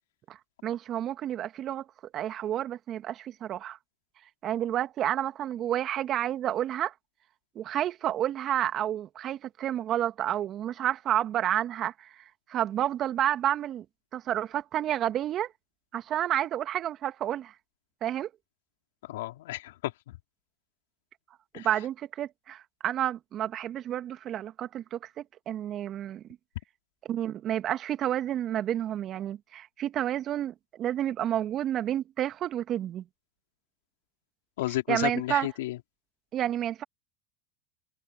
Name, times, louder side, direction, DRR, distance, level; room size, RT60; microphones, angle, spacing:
voice 1, 0.3-1.9 2.1-3.8 4.4-6.9 7.6-13.9 14.1-15.5 15.9-17.5 18.0-18.3 21.5-26.2 27.1-33.0 34.9-35.5 36.3-36.8, right 11 dB, 40° right, 1.9 m, -30 dB
voice 2, 19.0-20.2 21.5-21.7 34.6-35.8, left 16 dB, 75° left, 4.2 m, -32 dB
hypercardioid pair, 95°, 0 cm